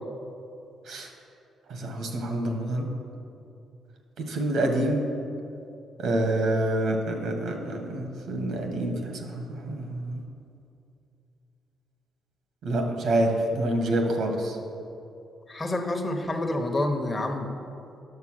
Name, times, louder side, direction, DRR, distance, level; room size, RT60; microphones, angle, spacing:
voice 1, 1.7-2.9 4.3-5.0 6.0-10.2 12.6-14.5, right 1 dB, 75° right, 3 dB, 1.6 m, -27 dB
voice 2, 15.5-17.5, left 1 dB, 25° left, 3 dB, 1.1 m, -28 dB
9.6 x 6.9 x 6.4 m, 2.7 s
cardioid pair, 90°, 0 cm